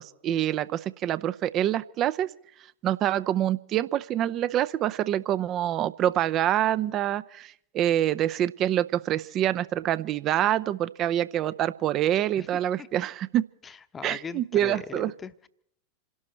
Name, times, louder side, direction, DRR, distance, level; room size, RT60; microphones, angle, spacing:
voice 1, 0.0-2.3 2.8-13.4 14.0-15.1, right 12 dB, 35° right, 16 dB, 0.6 m, -26 dB
voice 2, 12.4-12.9 13.6-15.5, left 6 dB, 20° left, 12 dB, 0.9 m, -40 dB
28.0 x 12.0 x 4.4 m, 0.71 s
figure-of-eight pair, 85°, 0 cm